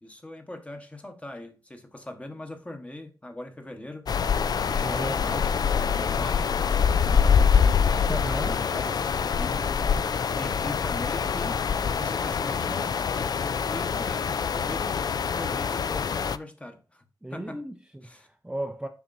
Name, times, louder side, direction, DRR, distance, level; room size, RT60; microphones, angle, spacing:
voice 1, 0.0-4.1 4.6-7.8 8.4-9.6 10.3-11.6 11.9-15.0 15.3-17.0 17.3-17.6 18.0-18.3, left 1 dB, 15° left, 1.0 m, -41 dB
sound 1, 4.1-16.4, left 6 dB, 60° left, 0.3 m, -25 dB
voice 2, 4.8-5.3 8.0-8.6 17.2-18.9, right 1 dB, 10° right, 0.5 m, -35 dB
7.1 x 5.6 x 2.6 m
wide cardioid pair, 145°, 8 cm